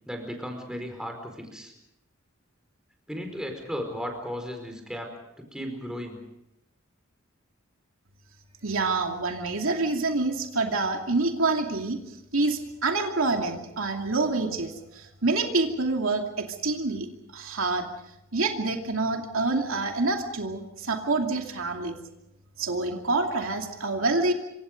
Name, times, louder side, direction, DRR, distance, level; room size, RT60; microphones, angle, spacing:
voice 1, 0.1-1.7 3.1-5.1 5.4-6.2, equal, 5° right, 4 dB, 4.7 m, -35 dB
voice 2, 8.6-12.0 12.3-17.1 17.3-17.9 18.3-21.9 22.6-24.3, right 3 dB, 75° right, 3 dB, 2.6 m, -27 dB
27.5 x 25.0 x 5.3 m, 0.88 s
head